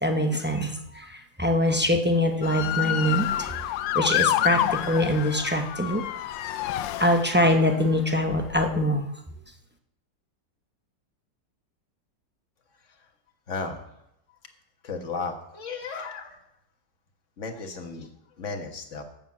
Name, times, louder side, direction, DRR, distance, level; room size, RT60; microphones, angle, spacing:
voice 1, 0.0-3.5 3.9-6.0 7.0-9.1, left 1 dB, 15° right, 4 dB, 0.4 m, -24 dB
Motor vehicle (road) / Siren, 2.4-7.7 8.3-8.7, left 12 dB, 85° left, 1.3 m, -28 dB
voice 2, 13.5-13.8 14.8-16.4 17.4-18.1 18.4-19.0, left 4 dB, 45° left, 4 dB, 1.6 m, -34 dB
12.0 x 7.1 x 7.5 m, 0.80 s
omnidirectional pair, 1.9 m